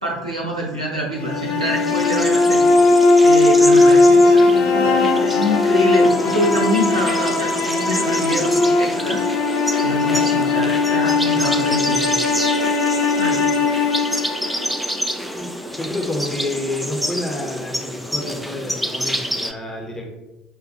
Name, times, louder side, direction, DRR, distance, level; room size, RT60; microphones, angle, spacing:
voice 1, 0.0-3.0 3.2-9.2 9.8-12.0 13.2-13.4, equal, 90° right, -2 dB, 0.8 m, -25 dB
sound 1, 1.2-15.3, left 3 dB, 50° left, 0.5 m, -18 dB
sound 2, 1.3-19.5, equal, ahead, 0.4 m, -28 dB
voice 2, 15.3-20.1, left 2 dB, 15° left, 0 dB, 0.9 m, -29 dB
6.2 x 2.5 x 2.6 m, 1.1 s
figure-of-eight pair, 60°, 3 cm